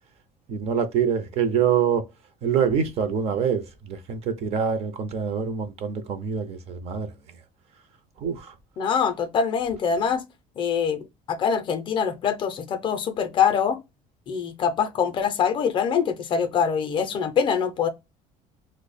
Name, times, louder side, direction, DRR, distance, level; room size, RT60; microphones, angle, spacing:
voice 1, 0.5-2.1 2.4-7.1 8.2-8.5, right 7 dB, 45° right, 0.5 m, -25 dB
voice 2, 8.8-10.2 10.6-11.0 11.3-13.8 14.3-17.9, left 7 dB, 35° left, 0.4 m, -24 dB
3.0 x 2.0 x 3.9 m
cardioid pair, 170°, 15 cm